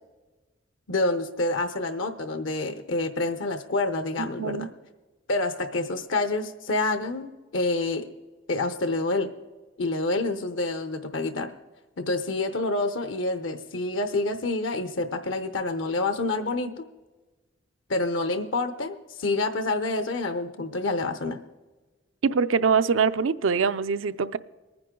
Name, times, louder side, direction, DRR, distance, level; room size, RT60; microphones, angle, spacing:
voice 1, 0.9-4.7 5.3-8.1 8.5-9.3 9.8-11.5 12.0-16.8 17.9-21.4, left 2 dB, 75° left, 9 dB, 0.9 m, -27 dB
voice 2, 22.2-24.4, right 5 dB, 85° right, 13 dB, 0.5 m, -23 dB
21.5 x 9.7 x 3.8 m, 1.2 s
head